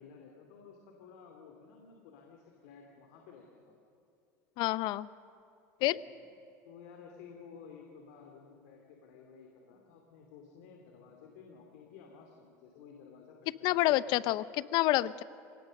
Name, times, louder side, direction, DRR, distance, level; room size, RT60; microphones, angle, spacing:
voice 1, 0.0-3.7 5.8-6.0 6.7-14.1, left 6 dB, 80° left, 1 dB, 2.7 m, -54 dB
voice 2, 4.6-5.1 5.8-5.9 13.6-15.2, left 17 dB, 65° left, 17 dB, 0.7 m, -28 dB
27.0 x 18.0 x 6.5 m, 2.5 s
supercardioid pair, 100°, 8 cm